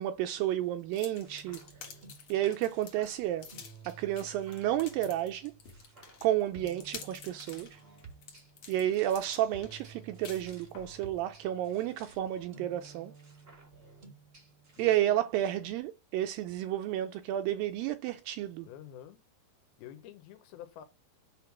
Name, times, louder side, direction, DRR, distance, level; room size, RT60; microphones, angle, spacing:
voice 1, 0.0-1.6 2.3-3.5 3.9-5.5 6.2-7.8 8.7-13.1 14.8-18.7, right 12 dB, 80° right, 2.1 m, -31 dB
sound 1, 0.9-11.0, left 6 dB, 50° left, 2.2 m, -49 dB
sound 2, 1.2-14.9, right 4 dB, 60° right, 0.6 m, -54 dB
voice 2, 14.8-15.2 15.4-15.5 18.7-19.2 19.8-20.8, left 11 dB, 80° left, 2.7 m, -49 dB
7.6 x 3.6 x 5.9 m
omnidirectional pair, 4.4 m